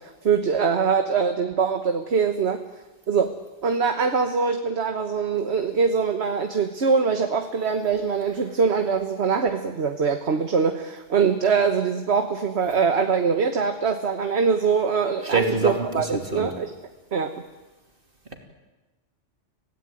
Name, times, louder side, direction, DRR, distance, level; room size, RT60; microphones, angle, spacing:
voice 1, 0.2-2.6 3.1-3.3 3.6-16.7 17.1-17.3, right 5 dB, 60° right, 7 dB, 1.5 m, -23 dB
voice 2, 15.2-16.5, right 3 dB, 45° right, 4 dB, 3.2 m, -25 dB
26.5 x 17.0 x 9.2 m, 1.1 s
omnidirectional pair, 1.2 m